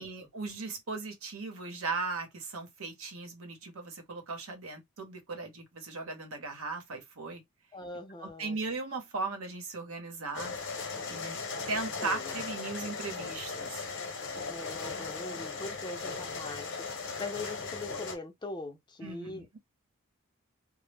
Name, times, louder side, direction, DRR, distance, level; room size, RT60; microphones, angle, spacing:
voice 1, 0.0-7.4 8.2-10.5 11.1-11.4 11.7-13.8 19.0-19.4, right 3 dB, 80° right, 0.9 m, -37 dB
voice 2, 7.7-8.6 12.0-12.4 14.4-16.8 17.2-19.6, left 2 dB, 20° left, 0.5 m, -42 dB
sound 1, 10.3-18.2, left 4 dB, 65° left, 0.8 m, -38 dB
2.1 x 2.0 x 3.2 m
head